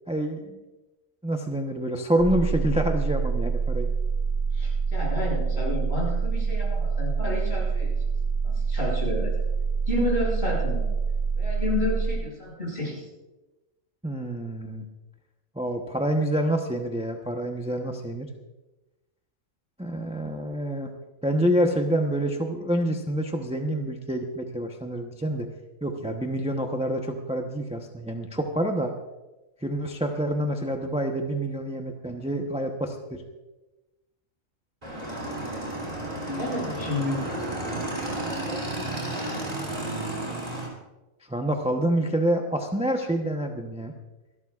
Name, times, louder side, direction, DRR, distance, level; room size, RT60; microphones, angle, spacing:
voice 1, 0.1-0.6 1.2-3.9 14.0-14.8 15.5-18.3 19.8-20.9 21.2-25.5 25.8-28.9 29.6-33.2 41.3-43.9, right 1 dB, 5° right, 3 dB, 0.7 m, -27 dB
sound 1, 2.2-12.2, right 5 dB, 70° right, 2.2 m, -26 dB
voice 2, 4.5-8.0 8.4-9.3 9.9-10.9 11.4-13.1 35.2-35.5 36.3-37.2 37.7-39.4, left 2 dB, 50° left, -4 dB, 6.5 m, -31 dB
Motorcycle / Engine, 34.8-40.7, right 1 dB, 30° right, 3.8 m, -32 dB
26.0 x 12.0 x 2.5 m, 1.1 s
omnidirectional pair, 1.4 m